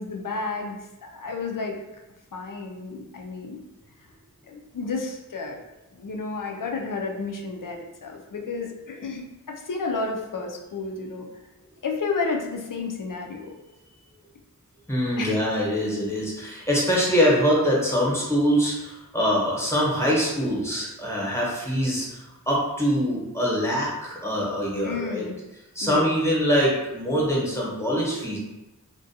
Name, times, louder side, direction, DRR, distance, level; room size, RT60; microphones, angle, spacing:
voice 1, 0.0-1.8 2.3-3.6 4.5-5.6 5.9-11.3 11.8-13.6 15.2-15.4 24.8-25.4 25.8-26.1, left 4 dB, 65° left, 2 dB, 0.5 m, -31 dB
voice 2, 14.9-25.2 25.7-28.4, equal, 10° left, -5 dB, 0.9 m, -24 dB
2.5 x 2.2 x 2.6 m, 1.0 s
wide cardioid pair, 40°, 34 cm